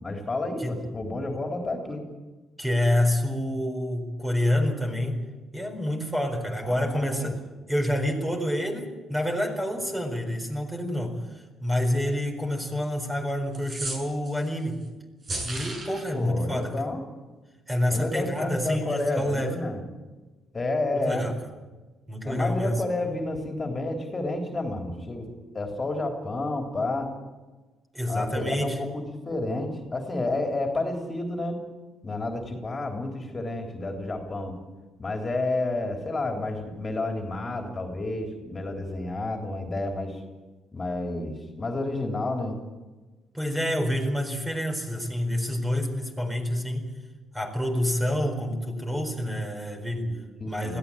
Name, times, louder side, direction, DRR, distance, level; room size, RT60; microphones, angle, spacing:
voice 1, 0.0-2.0 6.6-7.3 16.1-17.0 17.9-19.8 20.5-21.3 22.2-25.3 25.5-27.1 28.1-31.6 32.0-34.6 35.0-40.2 40.7-42.6 50.0-50.8, left 2 dB, 25° left, 3 dB, 3.5 m, -30 dB
voice 2, 2.6-5.2 5.5-7.4 7.7-14.8 15.4-16.8 17.7-19.6 20.9-21.4 22.1-22.8 27.9-28.8 43.3-46.9 47.3-50.1 50.5-50.8, left 1 dB, 10° right, 4 dB, 4.4 m, -28 dB
sound 1, 13.5-14.5 15.2-16.0, right 2 dB, 40° right, 7.0 m, -34 dB
21.0 x 15.5 x 8.7 m, 1.2 s
cardioid pair, 110°, 0 cm